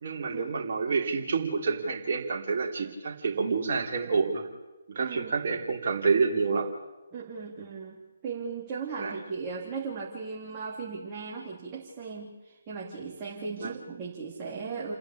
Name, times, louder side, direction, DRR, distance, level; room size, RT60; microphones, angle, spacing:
voice 1, 0.0-4.5 4.9-6.7 9.0-9.1 13.6-13.7, right 5 dB, 40° right, 2 dB, 3.2 m, -28 dB
voice 2, 5.0-5.3 7.1-14.9, right 5 dB, 20° right, -5 dB, 3.1 m, -37 dB
30.0 x 10.5 x 8.6 m, 1.1 s
figure-of-eight pair, 140°, 0 cm